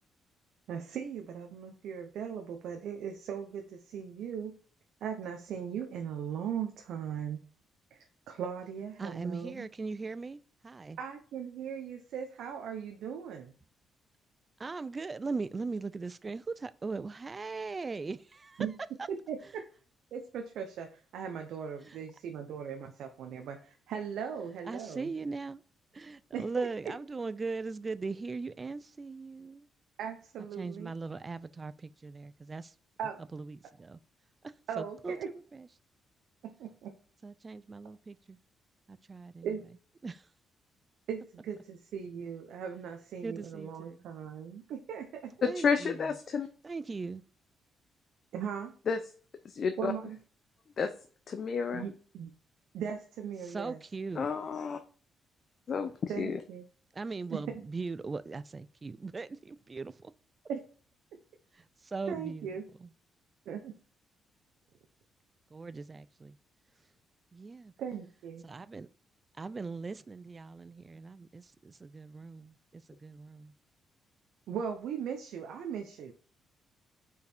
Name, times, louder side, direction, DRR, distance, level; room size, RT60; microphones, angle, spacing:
voice 1, 0.7-4.5 5.0-7.4 7.9-8.0 8.3-9.7 11.0-13.5 18.6-18.7 19.1-19.6 20.1-25.1 26.3-26.7 30.0-30.9 33.0-33.2 34.7-35.3 36.4-36.9 39.4-39.6 41.1-45.3 48.3-48.7 49.8-50.2 51.7-52.3 52.7-53.8 56.1-56.6 57.3-57.6 60.5-60.6 61.1-61.2 62.1-62.7 63.5-63.7 67.8-68.5 74.5-76.1, right 7 dB, 80° right, 0.8 m, -38 dB
voice 2, 9.0-11.0 14.6-18.7 21.8-22.0 24.6-25.6 25.9-29.7 30.6-32.7 33.3-34.0 34.4-35.7 37.2-38.4 38.9-39.5 40.0-40.3 43.2-44.0 45.4-46.1 46.6-47.2 53.4-54.3 56.9-60.1 61.5-62.9 65.5-66.4 67.3-67.7 68.4-68.9 69.4-73.5, right 4 dB, 30° right, 0.4 m, -40 dB
voice 3, 45.6-46.5 48.9-49.0 49.4-49.9 50.8-50.9 51.3-51.8 54.2-54.8 55.7-56.4, left 5 dB, 50° left, 0.6 m, -31 dB
5.3 x 4.8 x 4.4 m
cardioid pair, 90°, 0 cm